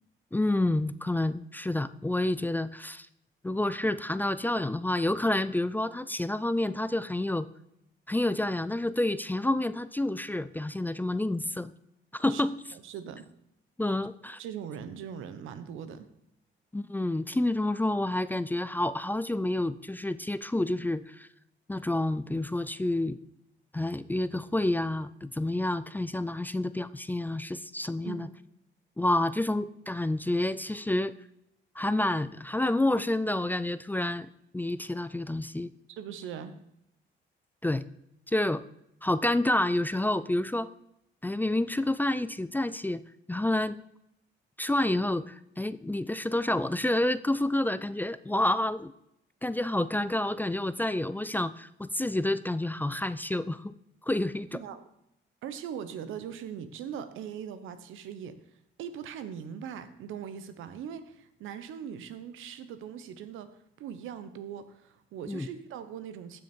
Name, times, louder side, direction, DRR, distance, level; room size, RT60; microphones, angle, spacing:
voice 1, 0.3-3.1 3.4-7.5 8.1-11.7 12.1-12.6 13.8-14.4 16.7-21.3 21.7-23.2 23.7-28.3 29.0-31.1 31.8-34.3 34.5-35.7 37.6-37.8 38.3-38.6 39.0-40.7 41.2-43.0 43.3-43.8 44.6-48.9 49.4-53.7 54.0-54.6 65.3-65.5, left 1 dB, 10° left, 15 dB, 0.4 m, -29 dB
voice 2, 12.7-13.2 14.4-16.1 28.0-28.3 35.9-36.6 54.5-54.8 55.4-58.4 58.8-66.4, right 8 dB, 85° right, 12 dB, 1.0 m, -40 dB
14.5 x 6.4 x 4.5 m, 0.79 s
cardioid pair, 90°, 20 cm